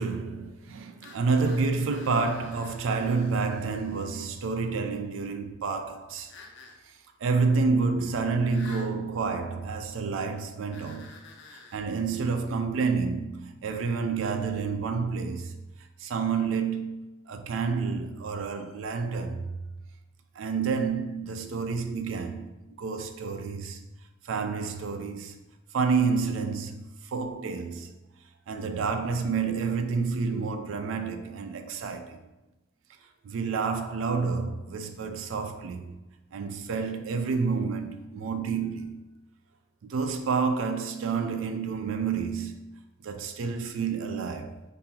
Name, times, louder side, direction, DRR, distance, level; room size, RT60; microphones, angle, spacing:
voice 1, 0.0-6.3 6.9-7.0 7.2-11.1 11.5-15.6 16.0-19.6 20.4-23.8 24.2-25.4 25.7-27.9 28.5-32.3 33.2-36.0 36.3-39.0 39.8-42.6 43.0-44.6, right 4 dB, 90° right, 0.4 m, -29 dB
sound 1, 1.0-4.2 6.3-6.8 8.5-8.9 10.7-11.8, left 3 dB, 65° left, 0.5 m, -50 dB
3.6 x 2.6 x 2.8 m
head